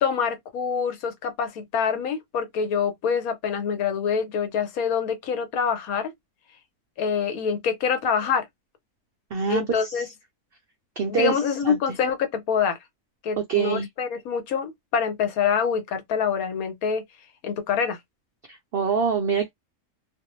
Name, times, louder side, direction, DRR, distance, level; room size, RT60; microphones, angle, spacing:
voice 1, 0.0-6.1 7.0-8.5 9.5-10.1 11.1-12.8 13.2-17.0 17.4-18.0, left 6 dB, 75° left, 1.2 m, -25 dB
voice 2, 9.3-10.1 11.0-11.8 13.4-13.9 18.5-19.5, right 6 dB, 75° right, 0.5 m, -25 dB
2.5 x 2.1 x 3.0 m
omnidirectional pair, 1.5 m